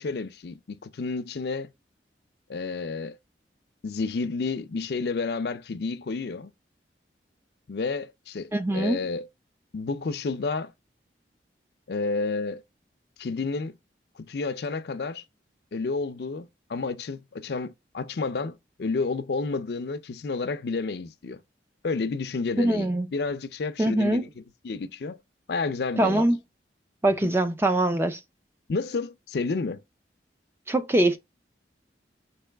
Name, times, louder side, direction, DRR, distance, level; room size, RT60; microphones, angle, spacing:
voice 1, 0.0-1.7 2.5-3.2 3.8-6.5 7.7-9.3 9.7-10.7 11.9-12.6 13.2-13.7 14.2-15.2 15.7-21.4 21.8-24.3 24.6-25.2 25.5-26.3 27.2-27.3 28.7-29.8, left 4 dB, 65° left, 0.5 m, -30 dB
voice 2, 8.5-9.0 22.6-23.1 23.8-24.2 26.0-26.4 27.0-28.2 30.7-31.2, right 1 dB, 15° right, 0.4 m, -23 dB
4.6 x 2.9 x 3.3 m
head